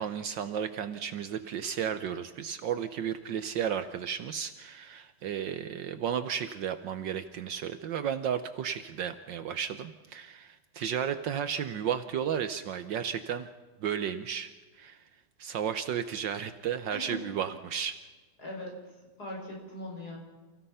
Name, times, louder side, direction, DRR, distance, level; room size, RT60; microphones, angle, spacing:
voice 1, 0.0-13.5 13.8-14.5 14.8-15.0 15.4-17.9, right 8 dB, 70° right, 10 dB, 1.5 m, -33 dB
voice 2, 16.9-17.2 18.4-20.2, left 1 dB, 50° left, -1 dB, 6.7 m, -40 dB
29.5 x 16.0 x 5.6 m, 1.3 s
omnidirectional pair, 2.1 m